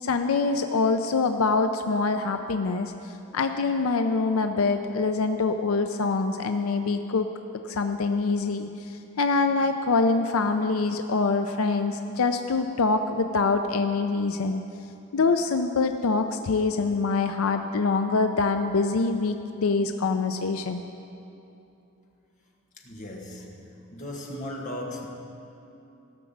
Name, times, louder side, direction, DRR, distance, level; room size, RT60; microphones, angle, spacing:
voice 1, 0.0-2.9 3.3-7.3 7.7-8.7 9.2-14.6 15.1-20.8, left 4 dB, 85° left, 7 dB, 0.5 m, -24 dB
voice 2, 22.8-25.1, left 1 dB, 35° left, 0 dB, 1.4 m, -37 dB
16.5 x 6.0 x 7.2 m, 2.9 s
head